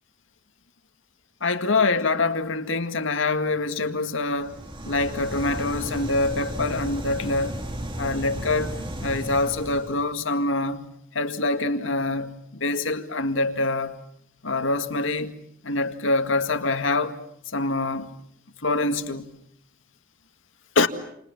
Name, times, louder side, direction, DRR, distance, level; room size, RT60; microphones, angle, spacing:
voice 1, 1.4-4.6 4.9-7.6 8.0-8.7 9.0-14.0 14.4-15.3 15.6-17.2 17.5-18.2 18.6-19.4 20.8-20.9, left 3 dB, 75° left, 1.9 m, -25 dB
sound 1, 4.3-10.0, right 1 dB, 25° right, 2.8 m, -34 dB
28.5 x 28.5 x 7.1 m
head